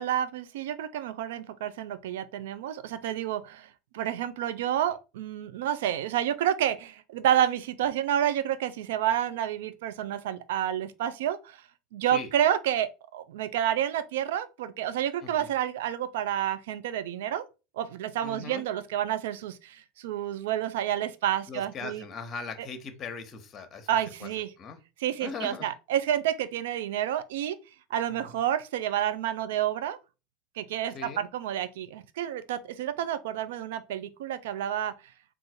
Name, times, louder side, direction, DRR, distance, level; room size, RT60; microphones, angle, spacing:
voice 1, 0.0-11.6 11.9-17.4 17.8-22.0 23.9-24.5 25.0-27.6 27.9-30.0 30.6-34.9, right 11 dB, 75° right, 0.5 m, -29 dB
voice 2, 18.2-18.6 21.5-23.9 24.2-24.3 24.6-24.8 25.2-25.7 28.1-28.4 30.9-31.2, left 5 dB, 35° left, 1.0 m, -39 dB
3.8 x 2.5 x 4.3 m
hypercardioid pair, 85°, 0 cm